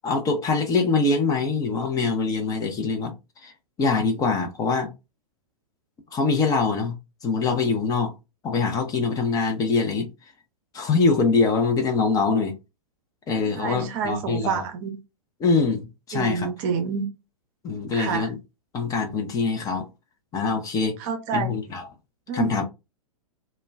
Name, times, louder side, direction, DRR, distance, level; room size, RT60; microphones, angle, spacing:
voice 1, 0.0-3.1 3.4-3.5 3.8-4.9 6.1-7.0 7.2-8.1 8.4-10.1 10.7-12.6 13.3-14.6 15.4-16.5 17.6-18.4 18.7-19.9 20.3-21.0 21.3-21.8 22.3-22.6, left 4 dB, 20° left, 0.5 m, -23 dB
voice 2, 13.6-15.0 16.1-17.1 17.9-18.3 21.0-21.5 22.3-22.5, right 6 dB, 40° right, 0.6 m, -28 dB
2.2 x 2.1 x 3.3 m
figure-of-eight pair, 105°, 18 cm